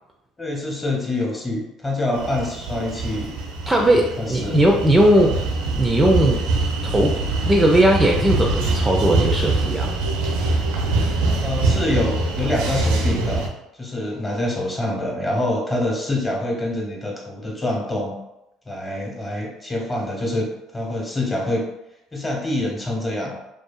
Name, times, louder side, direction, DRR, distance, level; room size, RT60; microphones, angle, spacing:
voice 1, 0.4-3.3 3.9-4.6 11.4-13.5 13.7-18.2 18.7-21.7 22.1-23.4, left 1 dB, 25° left, -1 dB, 0.9 m, -26 dB
sound 1, 2.1-13.5, right 3 dB, 85° right, 0.5 m, -23 dB
voice 2, 3.7-5.3 5.8-6.4 6.8-7.2 7.4-9.9, right 1 dB, 15° right, 1 dB, 0.4 m, -18 dB
2.6 x 2.3 x 2.3 m, 0.86 s
hypercardioid pair, 65°, 0 cm